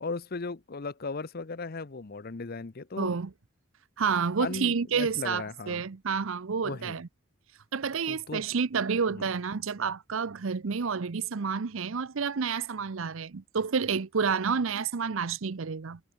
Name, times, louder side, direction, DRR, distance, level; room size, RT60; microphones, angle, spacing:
voice 1, 0.0-3.1 4.4-5.8 6.6-7.0 8.1-8.4 9.1-9.3, left 3 dB, 45° left, 0.7 m, -37 dB
voice 2, 3.0-3.3 4.0-7.1 7.7-16.0, right 5 dB, 70° right, 0.6 m, -29 dB
head